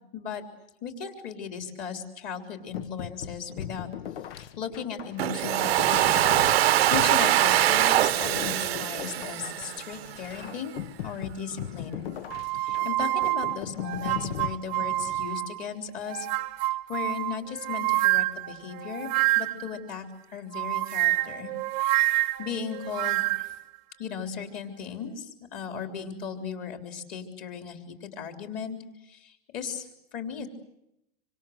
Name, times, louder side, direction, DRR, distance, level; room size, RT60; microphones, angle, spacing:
voice 1, 0.1-0.4 0.8-3.9 4.4-12.1 12.5-16.3 16.9-19.1 19.4-20.0 20.3-21.5 22.1-23.5 24.0-28.8 29.0-30.5, left 7 dB, 25° left, 6 dB, 3.6 m, -36 dB
sound 1, 2.7-15.3, left 10 dB, 70° left, 1.3 m, -39 dB
Domestic sounds home sounds, 5.2-10.1, right 13 dB, 80° right, 1.0 m, -23 dB
sound 2, 12.3-15.6 16.0-19.8 20.5-23.6, right 18 dB, 25° right, 1.0 m, -27 dB
26.5 x 25.5 x 7.9 m, 0.82 s
supercardioid pair, 175°, 30 cm